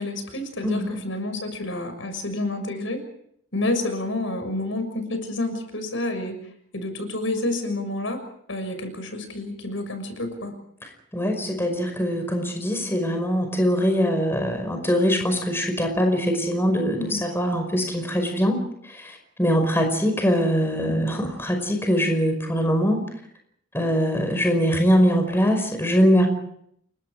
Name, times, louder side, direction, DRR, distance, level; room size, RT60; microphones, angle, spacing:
voice 1, 0.0-3.0 3.5-8.2 8.5-10.6 17.0-17.3, left 2 dB, 70° left, 8 dB, 6.6 m, -29 dB
voice 2, 0.6-1.0 11.1-18.6 18.8-23.0 23.7-26.3, equal, 10° left, 4 dB, 5.4 m, -22 dB
30.0 x 24.0 x 5.0 m, 0.70 s
head